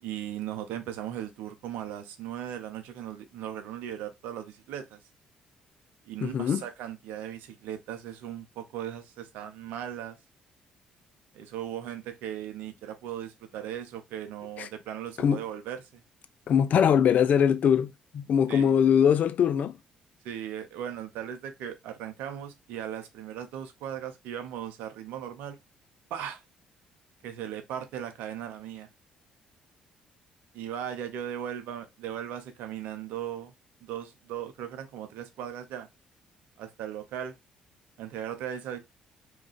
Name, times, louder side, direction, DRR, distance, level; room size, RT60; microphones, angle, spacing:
voice 1, 0.0-5.0 6.0-10.2 11.3-16.0 18.5-18.7 20.2-25.6 26.1-26.4 27.2-28.9 30.5-33.5 33.8-35.9 36.6-37.3 38.0-38.8, right 10 dB, 80° right, 0.5 m, -38 dB
voice 2, 6.2-6.6 14.6-14.7 15.2-15.4 16.5-19.8, left 8 dB, 60° left, 0.3 m, -22 dB
2.4 x 2.2 x 3.7 m
hypercardioid pair, 55°, 3 cm